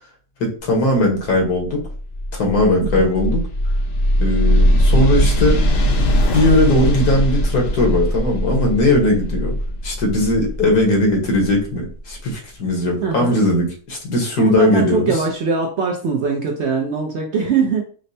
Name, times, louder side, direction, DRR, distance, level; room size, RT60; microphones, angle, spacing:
voice 1, 0.4-1.8 2.3-3.4 4.2-5.6 6.3-9.5 9.8-15.1, left 1 dB, 80° left, 0 dB, 1.6 m, -18 dB
sound 1, 1.3-12.1, equal, 60° left, 0.7 m, -20 dB
voice 2, 13.0-13.4 14.4-17.8, right 5 dB, 65° right, 0 dB, 0.7 m, -21 dB
5.1 x 2.1 x 2.7 m, 0.43 s
omnidirectional pair, 1.6 m